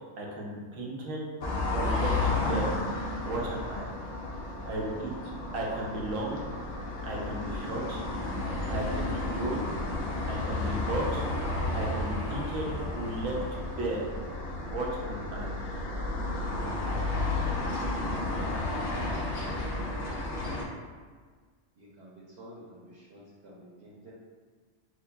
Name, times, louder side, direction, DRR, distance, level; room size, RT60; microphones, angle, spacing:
voice 1, 0.2-1.2 1.7-2.7 3.2-3.9 4.6-5.1 5.5-6.5 7.0-8.0 8.7-9.6 10.3-11.2 11.7-12.7 12.9-13.4 13.8-14.0 14.7-15.5, right 1 dB, 90° right, -2 dB, 1.1 m, -34 dB
sound 1, 1.4-20.6, left 2 dB, 65° left, 0.9 m, -32 dB
voice 2, 19.0-19.9 21.8-24.1, equal, 60° right, -6 dB, 0.9 m, -50 dB
6.3 x 2.2 x 2.2 m, 1.5 s
omnidirectional pair, 1.3 m